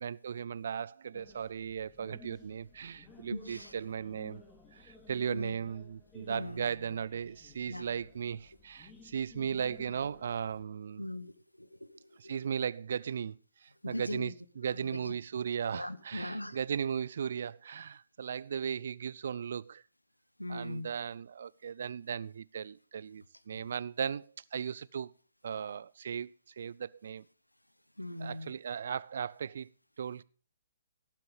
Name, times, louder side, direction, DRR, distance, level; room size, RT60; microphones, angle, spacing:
voice 1, 0.0-4.4 4.7-11.1 12.2-19.8 20.5-24.3 24.5-25.1 25.4-26.3 26.6-27.3 28.2-29.7 30.0-30.2, right 7 dB, 55° right, 0.5 m, -37 dB
sound 1, 1.1-10.6, left 3 dB, 15° left, 2.8 m, -56 dB
voice 2, 3.3-3.7 5.3-5.5 6.3-6.7 7.7-7.9 11.0-12.4 13.8-14.3 14.7-15.1 15.7-16.6 20.4-20.9 28.0-28.5, left 1 dB, 90° left, 1.0 m, -40 dB
17.5 x 7.6 x 5.1 m
figure-of-eight pair, 125°, 0 cm